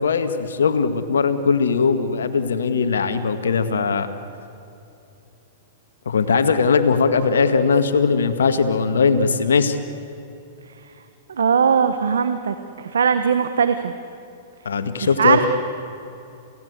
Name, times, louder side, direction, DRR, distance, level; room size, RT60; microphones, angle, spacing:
voice 1, 0.0-4.1 6.1-9.8 14.7-15.5, left 5 dB, 80° left, 8 dB, 1.9 m, -19 dB
voice 2, 11.4-13.9 15.0-15.5, right 6 dB, 80° right, 9 dB, 1.1 m, -19 dB
28.0 x 17.5 x 8.1 m, 2.8 s
hypercardioid pair, 115°, 0 cm